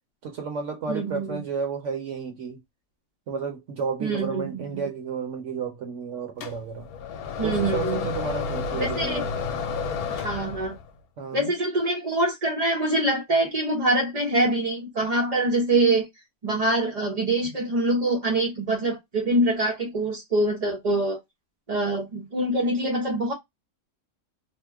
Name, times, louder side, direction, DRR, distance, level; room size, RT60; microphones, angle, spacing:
voice 1, 0.2-2.6 3.3-6.9 7.4-9.6 11.2-11.5, right 5 dB, 65° right, 0.9 m, -32 dB
voice 2, 0.9-1.4 4.0-4.8 7.4-8.1 8.8-9.2 10.1-10.8 11.3-16.1 16.4-21.2 21.7-23.3, right 2 dB, 45° right, 0.5 m, -24 dB
sound 1, 6.4-10.9, left 5 dB, 85° left, 1.1 m, -31 dB
2.8 x 2.1 x 3.3 m
omnidirectional pair, 1.5 m